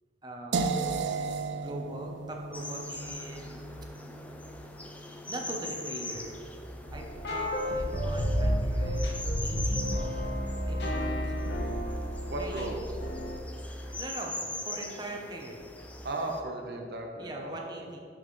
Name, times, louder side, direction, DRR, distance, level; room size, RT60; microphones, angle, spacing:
voice 1, 0.2-0.9 1.6-3.7 5.3-6.4 6.9-9.2 9.4-9.8 10.7-11.2 12.4-12.8 13.6-15.6 17.2-18.0, right 1 dB, 25° right, 0 dB, 0.7 m, -41 dB
sound 1, 0.5-6.4, right 4 dB, 85° right, 0.4 m, -35 dB
sound 2, 2.5-16.4, left 2 dB, 10° left, 0.4 m, -42 dB
sound 3, 6.8-13.4, equal, 70° left, 0.9 m, -31 dB
voice 2, 12.3-12.8 16.0-17.6, right 2 dB, 65° right, 2 dB, 0.8 m, -35 dB
10.5 x 4.2 x 3.1 m, 2.3 s
head